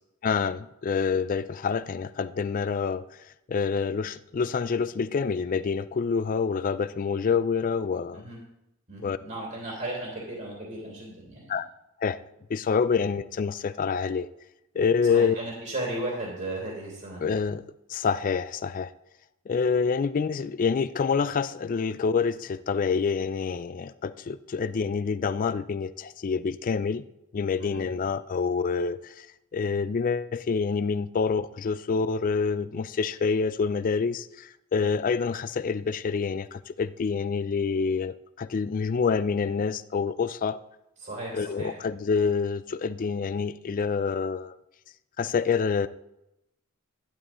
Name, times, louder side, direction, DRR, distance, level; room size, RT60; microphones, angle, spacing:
voice 1, 0.2-3.0 3.5-8.2 9.0-9.2 11.5-11.6 12.0-12.2 12.5-14.3 14.7-15.4 17.2-17.6 17.9-18.9 19.5-27.0 27.3-29.3 29.5-40.6 41.3-44.6 45.2-45.9, left 5 dB, 40° left, 0.3 m, -27 dB
voice 2, 8.9-11.5 15.1-17.2 27.6-27.8 41.0-41.7, right 1 dB, 45° right, 3.1 m, -35 dB
12.5 x 11.0 x 3.1 m
head